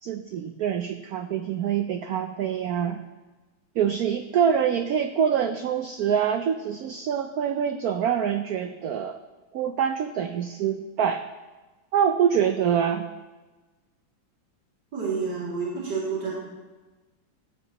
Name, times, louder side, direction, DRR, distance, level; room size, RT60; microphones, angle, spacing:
voice 1, 0.0-3.0 3.8-9.2 9.5-11.2 11.9-13.1, right 8 dB, 80° right, 8 dB, 0.8 m, -25 dB
voice 2, 14.9-16.3, right 5 dB, 65° right, -6 dB, 3.2 m, -29 dB
14.5 x 8.9 x 2.9 m, 1.2 s
omnidirectional pair, 2.1 m